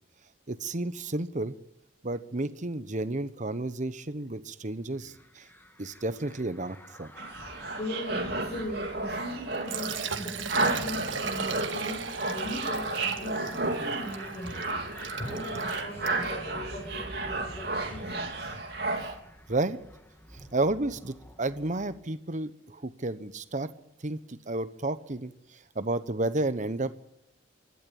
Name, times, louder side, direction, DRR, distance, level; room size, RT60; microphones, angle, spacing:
voice 1, 0.5-1.6 2.0-5.5 5.8-7.1 19.0-19.1 19.5-19.8 20.3-23.7 24.0-27.0, right 2 dB, 40° right, 13 dB, 1.1 m, -32 dB
sound 1, 5.0-22.0, equal, 10° left, 1.8 m, -50 dB
sound 2, 7.2-19.2, right 2 dB, 60° right, 3.3 m, -33 dB
voice 2, 7.8-18.6, equal, 40° left, -1 dB, 6.1 m, -39 dB
Liquid, 9.5-16.4, right 6 dB, 80° right, 1.6 m, -38 dB
25.5 x 12.5 x 8.8 m, 0.80 s
head